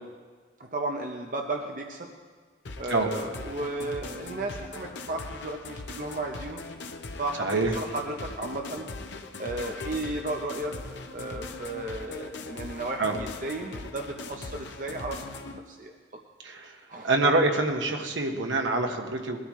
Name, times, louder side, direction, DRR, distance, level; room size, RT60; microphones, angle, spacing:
voice 1, 0.6-2.1 2.8-6.6 7.2-8.9 9.4-10.7 11.1-15.9 16.9-17.1, right 2 dB, 45° right, 2 dB, 0.8 m, -34 dB
sound 1, 2.6-15.6, left 3 dB, 70° left, 0.8 m, -40 dB
voice 2, 7.4-7.7 13.0-13.2 16.4-16.8 17.0-19.4, right 2 dB, 80° right, 3 dB, 1.4 m, -25 dB
21.0 x 12.5 x 3.2 m, 1.5 s
head